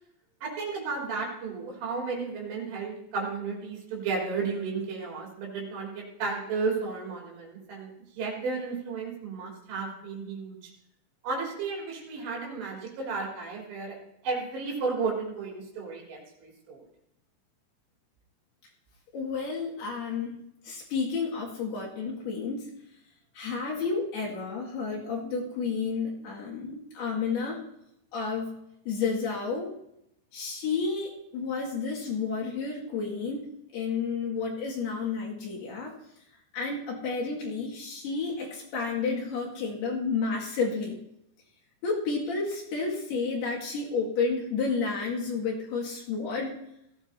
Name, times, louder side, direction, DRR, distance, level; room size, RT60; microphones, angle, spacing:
voice 1, 0.4-7.9 8.2-10.6 11.2-14.0 14.2-16.9, right 4 dB, 70° right, -3 dB, 5.7 m, -33 dB
voice 2, 19.1-20.4 20.6-22.7 23.4-27.6 28.1-28.6 28.9-29.7 30.3-35.9 36.5-41.0 41.8-46.6, left 4 dB, 60° left, -4 dB, 3.8 m, -31 dB
17.5 x 14.5 x 2.8 m, 0.79 s
omnidirectional pair, 5.5 m